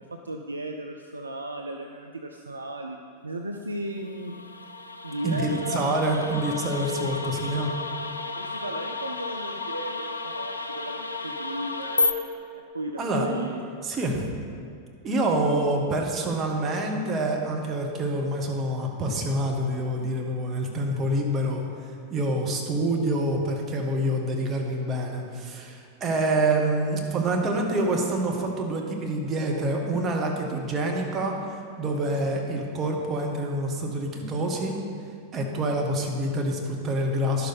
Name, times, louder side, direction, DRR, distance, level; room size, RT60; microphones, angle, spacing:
voice 1, 0.1-3.0 3.2-4.4 5.0-6.0 8.3-13.6, right 1 dB, 80° right, 3 dB, 0.4 m, -35 dB
sound 1, 4.0-12.1, left 3 dB, 80° left, 0.4 m, -32 dB
voice 2, 5.2-7.7 13.0-13.3 13.8-14.3 15.0-34.7 35.3-37.5, right 1 dB, 25° right, 1 dB, 1.3 m, -27 dB
11.0 x 6.6 x 4.1 m, 2.3 s
figure-of-eight pair, 90°, 0 cm